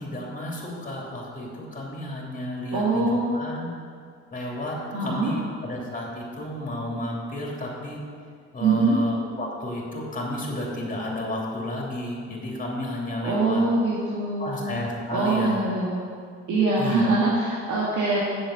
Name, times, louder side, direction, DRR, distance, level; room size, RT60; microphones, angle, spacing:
voice 1, 0.0-3.7 4.3-8.0 8.5-13.6 14.4-15.6 16.8-17.1, left 1 dB, 25° left, -2 dB, 3.0 m, -32 dB
voice 2, 2.7-3.4 4.9-5.3 8.6-9.0 13.2-14.6 15.1-16.0 16.5-18.2, right 3 dB, 75° right, -6 dB, 2.0 m, -23 dB
7.6 x 6.9 x 8.0 m, 2.1 s
cardioid pair, 90°, 30 cm